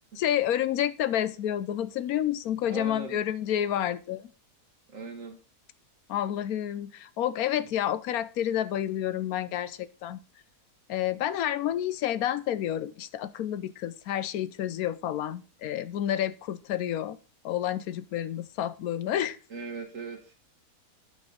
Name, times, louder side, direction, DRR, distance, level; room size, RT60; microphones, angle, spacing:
voice 1, 0.2-4.3 6.1-10.2 10.9-17.2 17.4-19.4, left 11 dB, 75° left, 1.1 m, -29 dB
voice 2, 2.6-3.2 4.9-5.4 19.5-20.3, right 3 dB, 60° right, 1.5 m, -39 dB
8.7 x 6.2 x 3.7 m
omnidirectional pair, 1.6 m